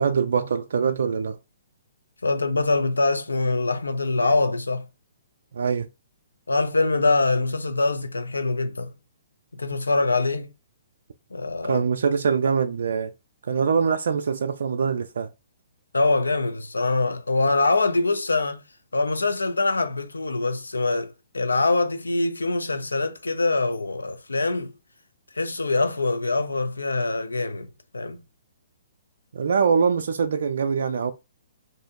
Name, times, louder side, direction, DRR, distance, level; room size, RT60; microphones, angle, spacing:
voice 1, 0.0-1.4 5.5-5.9 11.7-13.1 13.4-15.3 29.3-31.1, right 6 dB, 70° right, 0.3 m, -23 dB
voice 2, 2.2-4.9 6.5-8.9 9.5-10.5 11.3-11.8 15.9-18.6 18.9-24.7 25.3-27.7 27.9-28.2, left 3 dB, 90° left, 0.5 m, -24 dB
2.7 x 2.6 x 3.6 m
hypercardioid pair, 130°, 0 cm